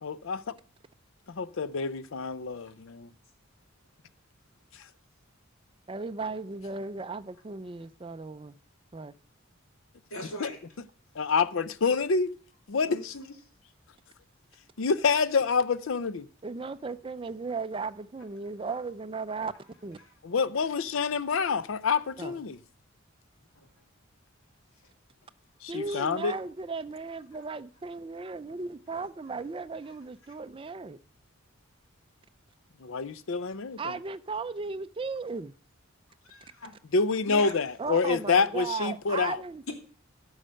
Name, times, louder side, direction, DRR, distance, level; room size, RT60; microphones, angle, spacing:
voice 1, 0.0-0.4 1.3-3.1 10.4-10.5 11.2-12.3 12.7-13.1 14.8-16.3 20.2-22.6 25.6-26.3 32.8-33.9 36.9-39.4, left 5 dB, 70° left, 0.5 m, -27 dB
voice 2, 5.9-8.5 8.9-9.1 16.4-19.5 19.8-20.0 22.2-22.4 25.7-31.0 33.8-35.5 37.8-39.6, right 4 dB, 25° right, 0.4 m, -36 dB
voice 3, 10.1-10.6 12.9-13.3 20.0-20.1 23.5-23.7 25.9-26.0 27.3-27.4 36.2-36.7 37.3-37.6 39.7-39.8, left 2 dB, 90° left, 2.7 m, -40 dB
11.0 x 6.5 x 6.3 m
head